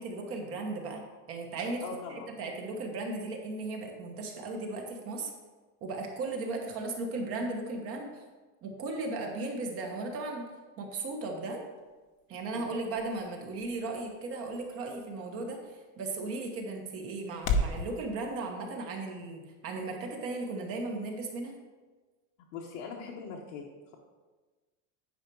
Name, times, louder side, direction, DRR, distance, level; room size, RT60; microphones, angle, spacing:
voice 1, 0.0-5.3 5.8-8.2 8.6-10.4 10.8-11.6 12.3-21.6, right 3 dB, 35° right, 2 dB, 1.1 m, -36 dB
voice 2, 1.8-2.4 12.5-12.7 22.5-23.6, left 5 dB, 60° left, -1 dB, 1.1 m, -41 dB
sound 1, 11.6-17.8, left 2 dB, 40° left, 0.8 m, -38 dB
9.8 x 5.0 x 4.6 m, 1.3 s
supercardioid pair, 170°, 41 cm